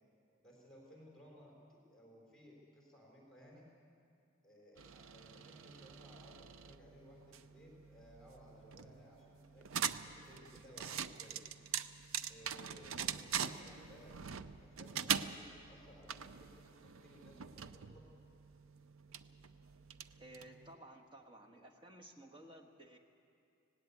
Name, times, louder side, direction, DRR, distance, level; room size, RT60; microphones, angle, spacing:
voice 1, 0.4-3.6 4.4-11.4 12.3-18.1, equal, 5° left, -3 dB, 3.9 m, -60 dB
sound 1, 4.8-20.7, right 8 dB, 75° right, 0.6 m, -43 dB
voice 2, 20.2-23.0, right 1 dB, 25° right, 3 dB, 1.4 m, -56 dB
18.5 x 18.0 x 8.2 m, 2.5 s
head